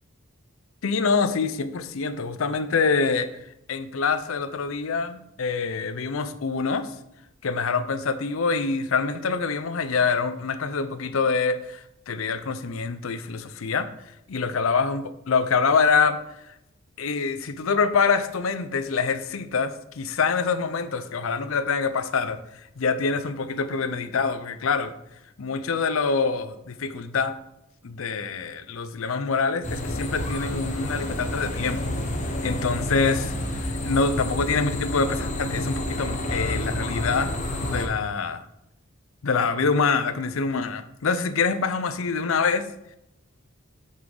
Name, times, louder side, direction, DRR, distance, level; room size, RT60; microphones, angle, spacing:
voice 1, 0.8-3.3 3.7-6.9 7.4-13.9 14.3-16.2 17.0-22.4 22.8-24.9 25.4-27.3 27.8-31.9 32.4-37.3 37.6-38.4 39.2-42.7, left 5 dB, 70° left, 12 dB, 0.5 m, -25 dB
sound 1, 29.6-37.9, left 1 dB, 35° left, 1.1 m, -29 dB
6.0 x 5.6 x 4.9 m, 0.85 s
head